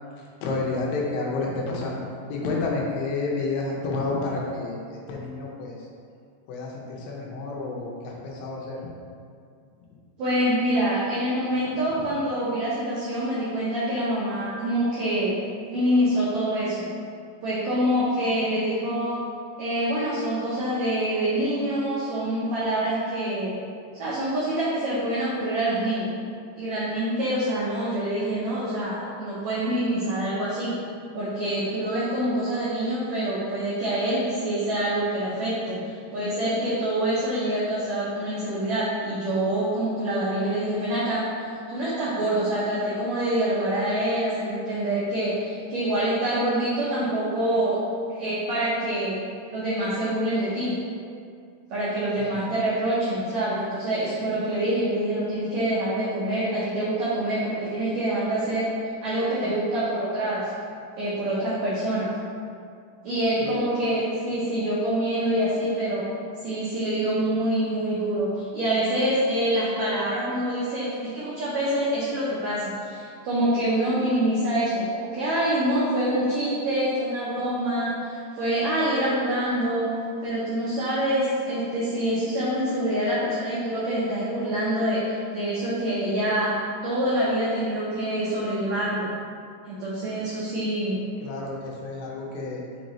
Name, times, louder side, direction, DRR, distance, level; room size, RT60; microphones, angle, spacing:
voice 1, 0.2-2.0 2.3-5.9 6.5-8.8 11.6-12.1 52.2-52.4 63.4-63.6 91.2-92.6, left 3 dB, 90° left, -2 dB, 2.5 m, -30 dB
voice 2, 10.2-15.3 15.7-16.9 17.4-19.3 19.6-23.5 23.9-26.1 26.6-30.8 31.1-41.2 41.7-47.8 48.1-49.2 49.5-50.8 51.7-58.7 59.0-60.5 61.0-62.1 63.0-66.1 66.4-79.9 80.2-86.5 86.8-89.1 89.6-91.0, right 1 dB, 75° right, -8 dB, 1.7 m, -26 dB
6.6 x 2.7 x 3.0 m, 2.3 s
omnidirectional pair, 3.9 m